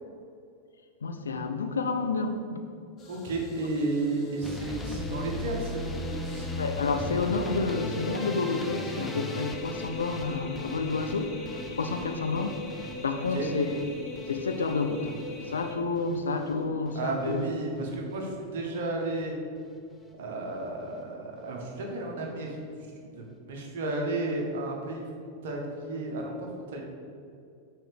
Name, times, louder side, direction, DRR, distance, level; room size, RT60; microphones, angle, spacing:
voice 1, 1.0-2.6 6.6-13.7 14.3-15.2 15.5-17.5, left 3 dB, 70° left, 6 dB, 0.7 m, -30 dB
sound 1, 3.0-15.8, left 2 dB, 30° left, 1.3 m, -42 dB
voice 2, 3.1-6.5 13.1-13.5 16.9-19.4 20.2-25.1 25.4-26.8, right 2 dB, 55° right, -1 dB, 1.6 m, -33 dB
sound 2, 4.4-16.5 16.8-17.4 17.7-18.3 18.7-18.9 19.2-19.3 19.6-19.7, left 1 dB, 10° left, 0.7 m, -39 dB
6.2 x 4.8 x 6.7 m, 2.5 s
figure-of-eight pair, 90°, 0 cm